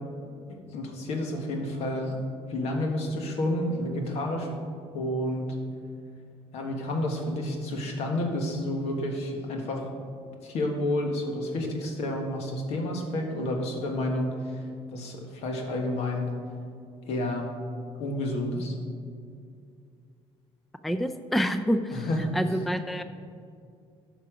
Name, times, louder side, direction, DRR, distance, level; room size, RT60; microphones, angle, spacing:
voice 1, 0.5-2.2 2.5-4.5 4.9-5.5 6.5-9.9 10.4-14.6 14.9-16.3 17.0-17.5 18.0-18.7 21.9-22.3, left 1 dB, 70° left, 2 dB, 1.6 m, -30 dB
voice 2, 20.8-22.1 22.3-23.0, equal, ahead, 9 dB, 0.4 m, -27 dB
12.0 x 5.7 x 5.1 m, 2.4 s
cardioid pair, 115°, 11 cm